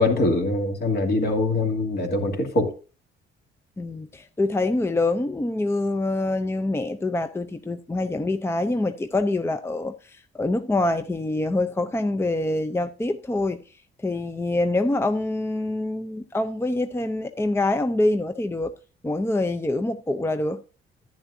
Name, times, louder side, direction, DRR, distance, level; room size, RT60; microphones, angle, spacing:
voice 1, 0.0-2.7, left 2 dB, 55° left, 2.5 m, -23 dB
voice 2, 3.8-13.6 14.0-18.7 19.0-20.6, left 2 dB, 10° left, 0.6 m, -25 dB
10.5 x 10.0 x 2.7 m
cardioid pair, 90°, 20 cm